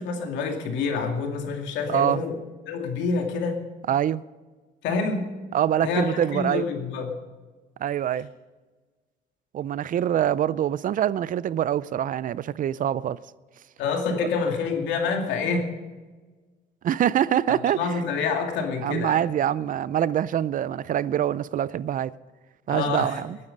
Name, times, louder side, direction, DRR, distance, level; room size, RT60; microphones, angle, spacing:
voice 1, 0.0-2.4 2.7-3.6 4.8-5.3 5.8-7.1 13.8-15.7 17.7-19.2 22.7-23.2, left 4 dB, 90° left, 2.4 m, -27 dB
voice 2, 1.9-2.2 3.9-4.2 5.5-6.7 7.8-8.3 9.5-13.2 14.1-14.2 16.8-17.9 18.8-22.1 22.7-23.4, right 10 dB, 45° right, 0.5 m, -25 dB
20.0 x 9.8 x 5.3 m
cardioid pair, 115°, 18 cm